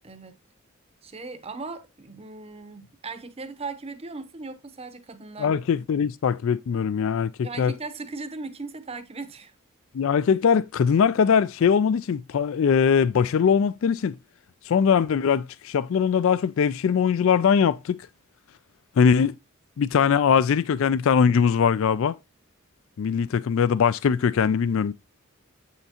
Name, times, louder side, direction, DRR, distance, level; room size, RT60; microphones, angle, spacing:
voice 1, 0.0-0.4 1.0-5.6 7.4-9.5, right 3 dB, 25° right, 0.7 m, -38 dB
voice 2, 5.4-7.7 9.9-14.2 14.6-18.0 19.0-19.3 19.8-22.1 23.0-24.9, left 6 dB, 65° left, 0.3 m, -21 dB
7.9 x 5.7 x 2.8 m
head